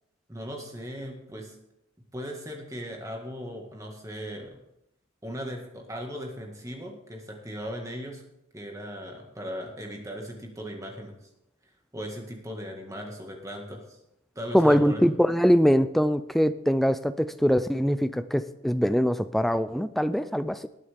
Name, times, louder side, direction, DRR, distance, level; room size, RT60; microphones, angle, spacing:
voice 1, 0.3-1.6 2.1-4.6 5.2-8.2 8.5-11.1 11.9-14.0 14.4-15.1, equal, 15° right, 1 dB, 1.9 m, -38 dB
voice 2, 14.5-20.7, equal, ahead, 12 dB, 0.3 m, -23 dB
19.5 x 8.5 x 3.6 m, 0.84 s
head